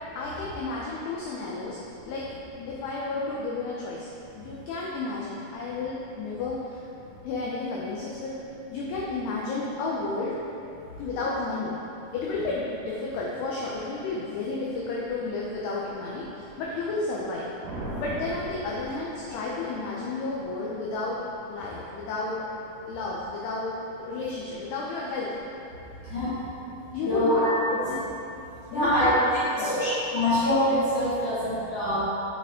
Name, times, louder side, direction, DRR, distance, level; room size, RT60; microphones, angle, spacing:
voice 1, 0.2-1.8 2.1-2.3 2.7-4.1 4.4-6.8 7.2-8.4 8.7-10.4 11.0-11.8 12.1-17.5 17.9-21.2 21.5-22.4 22.9-23.7 24.0-25.3 26.9-27.4 27.7-27.9 28.7-29.9, left 3 dB, 85° left, -5 dB, 2.3 m, -32 dB
sound 1, 17.6-19.8, right 2 dB, 75° right, 2.1 m, -38 dB
voice 2, 26.0-26.3 27.0-27.5 27.9-28.0 28.7-29.1 29.5-32.0, left 1 dB, 65° left, -13 dB, 1.5 m, -24 dB
8.4 x 6.7 x 3.7 m, 2.8 s
omnidirectional pair, 5.7 m